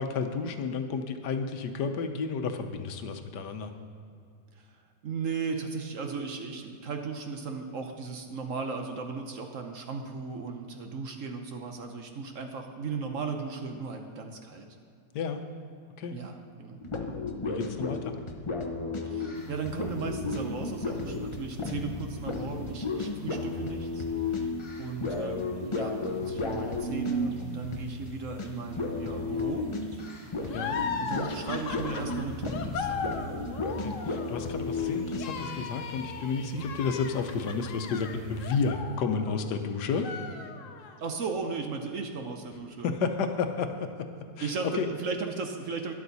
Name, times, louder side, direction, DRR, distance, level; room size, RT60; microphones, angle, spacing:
voice 1, 0.0-3.7 15.1-15.4 16.0-16.2 17.4-18.1 30.5-30.8 33.8-40.1 42.8-43.9 44.4-44.9, left 5 dB, 80° left, 7 dB, 1.4 m, -31 dB
voice 2, 5.0-14.7 16.1-16.8 19.1-24.0 24.3-24.5 24.8-29.6 30.4-30.6 31.0-33.1 36.4-36.7 41.0-42.9 44.4-45.9, right 4 dB, 55° right, 4 dB, 1.1 m, -36 dB
sound 1, 16.8-28.1 28.4-28.5 28.8-35.6, left 3 dB, 40° left, 0.4 m, -33 dB
sound 2, 19.3-38.7, right 2 dB, 35° right, 1.6 m, -47 dB
sound 3, 30.5-39.6 39.9-41.0, left 5 dB, 60° left, 1.0 m, -37 dB
12.5 x 11.0 x 4.0 m, 2.4 s
omnidirectional pair, 1.8 m